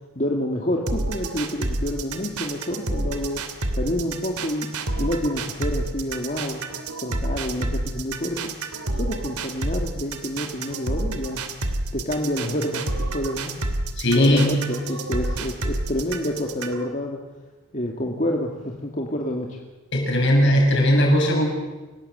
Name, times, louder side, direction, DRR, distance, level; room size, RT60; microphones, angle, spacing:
voice 1, 0.2-3.4 3.7-4.7 5.0-6.6 7.0-8.5 8.9-11.4 11.9-13.6 14.1-17.2 17.7-19.6, left 1 dB, 35° left, 1 dB, 2.2 m, -28 dB
sound 1, 0.9-16.9, right 2 dB, 85° right, 2.7 m, -28 dB
voice 2, 14.0-14.6 19.9-21.5, equal, 55° left, 2 dB, 6.9 m, -18 dB
29.0 x 18.0 x 8.0 m, 1.2 s
head